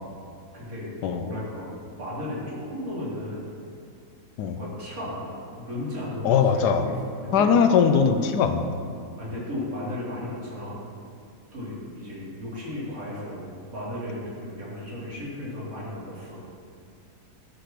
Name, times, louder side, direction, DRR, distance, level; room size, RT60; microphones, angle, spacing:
voice 1, 0.5-1.7 2.0-3.5 4.5-7.5 9.2-10.8 11.5-16.4, left 1 dB, 55° right, -8 dB, 3.3 m, -35 dB
voice 2, 6.2-6.9 7.3-8.7, left 6 dB, 80° left, 7 dB, 1.2 m, -20 dB
11.5 x 5.0 x 5.9 m, 2.4 s
omnidirectional pair, 1.8 m